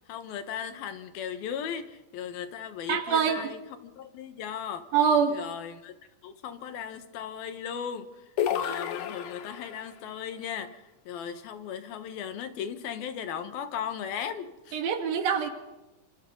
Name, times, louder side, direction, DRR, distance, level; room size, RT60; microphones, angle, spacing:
voice 1, 0.1-4.9 5.3-5.9 6.2-8.2 8.5-14.8, left 8 dB, 85° left, 3.3 m, -37 dB
voice 2, 2.9-3.5 4.9-5.4 14.7-15.5, right 7 dB, 80° right, 4.0 m, -24 dB
sound 1, 8.4-9.9, left 9 dB, 65° left, 2.4 m, -31 dB
28.5 x 26.5 x 4.0 m
omnidirectional pair, 4.1 m